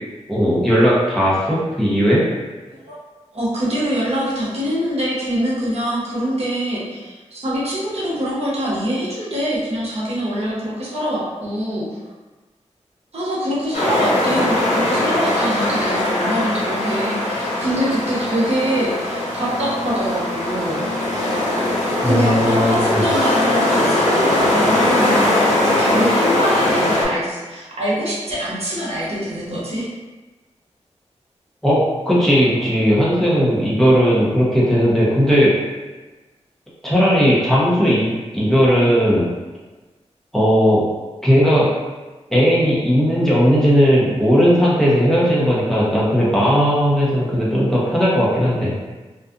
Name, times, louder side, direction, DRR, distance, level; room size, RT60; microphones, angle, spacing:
voice 1, 0.3-2.2 22.0-23.0 31.6-35.5 36.8-39.3 40.3-40.9 41.2-41.7 42.3-48.7, equal, 5° left, -8 dB, 0.8 m, -16 dB
voice 2, 3.3-11.9 13.1-20.8 22.0-29.9, equal, 60° right, -7 dB, 0.9 m, -24 dB
sound 1, 13.7-27.0, left 1 dB, 75° left, 0.8 m, -20 dB
2.5 x 2.4 x 2.5 m, 1.2 s
cardioid pair, 70°, 12 cm